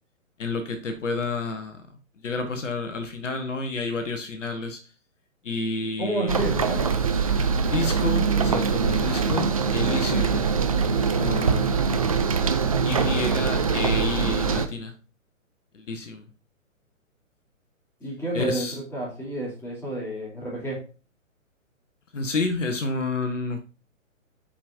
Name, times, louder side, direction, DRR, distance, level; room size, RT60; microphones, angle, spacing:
voice 1, 0.4-1.8 2.2-4.8 5.4-6.4 7.7-10.4 11.2-11.9 12.8-14.9 15.7-16.3 18.3-18.8 22.1-23.6, left 3 dB, 65° left, 6 dB, 1.2 m, -30 dB
voice 2, 6.0-6.9 18.0-20.8, right 1 dB, 5° left, -6 dB, 2.9 m, -30 dB
sound 1, 6.3-14.7, right 5 dB, 30° right, 0.4 m, -23 dB
8.5 x 5.0 x 2.7 m, 0.34 s
figure-of-eight pair, 125°, 41 cm